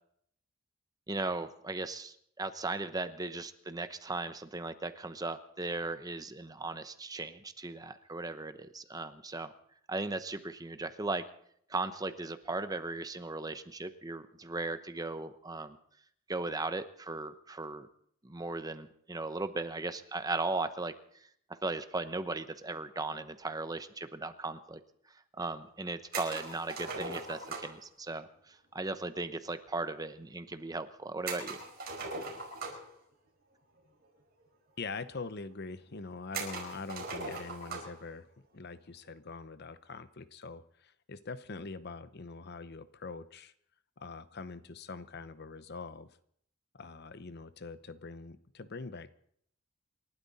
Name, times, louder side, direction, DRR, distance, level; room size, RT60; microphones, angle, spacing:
voice 1, 1.1-9.5 9.9-11.2 11.7-15.8 16.3-17.9 18.2-20.9 21.5-24.8 25.4-31.6, right 2 dB, 20° right, 10 dB, 0.9 m, -37 dB
sound 1, 26.1-27.8 31.3-33.0 34.0-34.1 34.4-34.5 35.3-35.4 36.3-38.0, right 3 dB, 50° right, 5.1 m, -40 dB
voice 2, 34.8-38.3 38.5-43.5 44.0-46.1 46.7-49.1, left 4 dB, 50° left, 13 dB, 0.8 m, -43 dB
28.0 x 12.5 x 4.2 m, 0.67 s
head